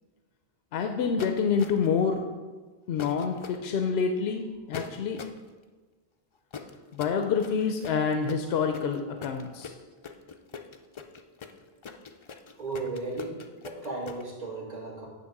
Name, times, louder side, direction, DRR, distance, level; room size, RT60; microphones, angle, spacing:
voice 1, 0.7-2.2 2.9-5.2 6.9-9.7, left 6 dB, 85° left, 6 dB, 0.8 m, -27 dB
sound 1, 1.2-2.0 3.0-3.6 4.7-5.4 6.5-14.2, left 6 dB, 45° left, 0.4 m, -41 dB
voice 2, 12.6-15.1, right 3 dB, 45° right, -2 dB, 1.4 m, -35 dB
8.9 x 3.3 x 5.8 m, 1.3 s
omnidirectional pair, 1.0 m